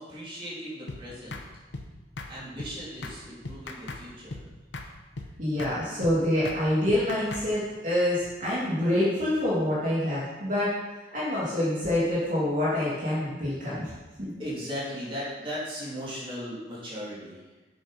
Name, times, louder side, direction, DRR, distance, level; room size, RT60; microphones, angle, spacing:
voice 1, 0.0-1.4 2.3-4.4 14.4-17.4, equal, 30° right, -7 dB, 3.0 m, -37 dB
sound 1, 0.9-1.0 1.3-1.5 1.7-1.9 2.2-2.3 2.6-2.7 3.0-3.2 3.4-4.0 4.3-4.5 4.7-4.9 5.2-5.3 5.6-5.7 6.0-6.2 6.4-6.6 6.9-7.5, left 2 dB, 75° left, 1.0 m, -38 dB
voice 2, 5.4-10.7 11.1-13.9 14.2-14.3, left 1 dB, 45° right, -8 dB, 2.4 m, -26 dB
8.0 x 7.1 x 5.0 m, 1.2 s
head